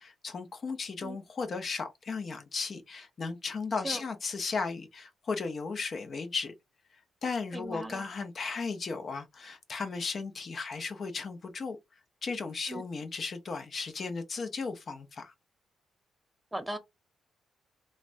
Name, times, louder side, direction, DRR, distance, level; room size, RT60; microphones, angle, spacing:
voice 1, 0.0-6.5 7.2-11.8 12.2-15.3, left 4 dB, 45° left, 0.6 m, -35 dB
voice 2, 7.5-8.1 12.7-12.9 16.5-16.8, right 1 dB, 10° right, 0.5 m, -38 dB
3.2 x 2.1 x 2.5 m
cardioid pair, 105°, 0 cm